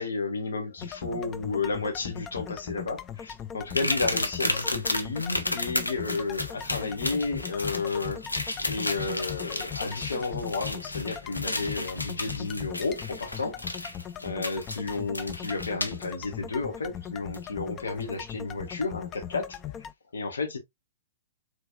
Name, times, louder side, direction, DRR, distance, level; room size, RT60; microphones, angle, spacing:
voice 1, 0.0-8.2 8.6-13.6 14.2-19.7 20.1-20.6, left 3 dB, 65° left, 1.2 m, -32 dB
sound 1, 0.8-19.9, left 9 dB, 20° left, 0.3 m, -40 dB
sound 2, 3.7-16.1 17.3-17.4 18.0-18.1, left 2 dB, 80° left, 0.7 m, -33 dB
4.3 x 3.2 x 2.4 m
figure-of-eight pair, 110°, 0 cm